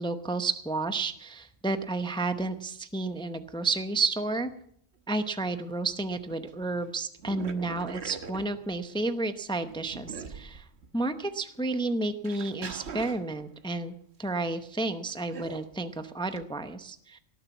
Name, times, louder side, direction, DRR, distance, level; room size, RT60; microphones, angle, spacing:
voice 1, 0.0-4.5 5.1-10.6 10.9-13.9 14.2-17.2, right 3 dB, 5° left, 9 dB, 0.6 m, -31 dB
sound 1, 5.5-5.6 5.9-6.6 7.2-9.1 9.5-11.0 11.6-11.7 12.2-13.7 15.3-15.8 16.3-16.4, right 5 dB, 60° right, 1.3 m, -42 dB
18.0 x 7.0 x 8.2 m, 0.68 s
omnidirectional pair, 1.3 m